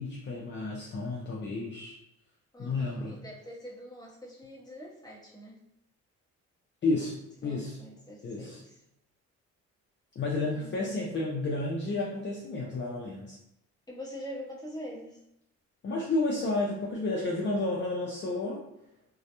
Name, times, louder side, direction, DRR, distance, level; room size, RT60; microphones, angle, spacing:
voice 1, 0.0-1.9 2.6-3.2 6.8-7.1 7.4-7.8 8.2-8.6 10.2-13.4 15.8-18.6, left 2 dB, 40° left, -3 dB, 0.5 m, -31 dB
voice 2, 2.5-5.6 7.4-8.8 10.4-10.9 13.9-15.2, equal, 15° left, -4 dB, 0.8 m, -44 dB
2.2 x 2.1 x 2.8 m, 0.81 s
cardioid pair, 90°, 30 cm